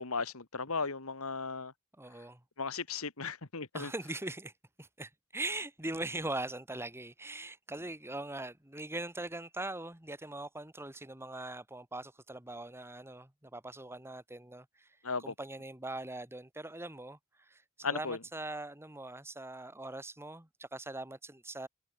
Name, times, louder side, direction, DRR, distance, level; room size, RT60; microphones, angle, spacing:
voice 1, 0.0-1.7 2.6-3.9 15.0-15.3 17.8-18.2, left 4 dB, 65° left, 2.1 m, -36 dB
voice 2, 2.0-2.4 3.7-4.5 4.8-14.9 15.2-21.7, right 2 dB, 10° right, 1.9 m, -41 dB
head